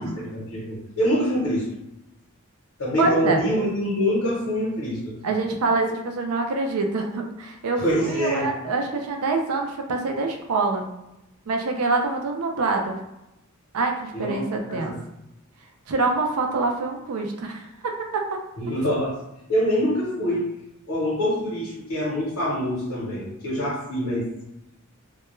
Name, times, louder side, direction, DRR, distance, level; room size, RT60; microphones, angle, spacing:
voice 1, 0.0-1.7 2.8-5.1 7.8-8.5 14.1-14.4 14.7-15.0 18.6-19.2 19.5-20.5 20.9-24.3, equal, 80° left, -6 dB, 0.9 m, -25 dB
voice 2, 3.0-3.4 5.2-10.8 11.5-13.0 13.7-14.9 15.9-17.7 18.1-18.4, right 3 dB, 80° right, 3 dB, 0.4 m, -25 dB
2.2 x 2.2 x 3.0 m, 0.88 s
head